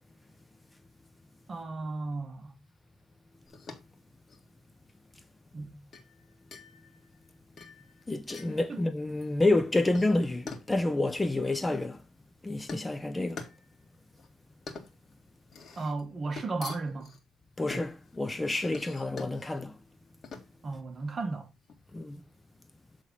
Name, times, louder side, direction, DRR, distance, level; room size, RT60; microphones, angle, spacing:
voice 1, 1.5-2.5 5.5-5.7 8.7-8.8 15.8-17.1 20.6-21.5, right 3 dB, 40° right, 1.4 m, -34 dB
sound 1, 3.5-22.3, left 4 dB, 55° left, 1.9 m, -47 dB
voice 2, 8.1-12.0 12.4-13.4 17.6-19.7 21.9-22.2, left 2 dB, 15° left, 0.9 m, -29 dB
8.1 x 3.6 x 5.3 m
cardioid pair, 90°, 0 cm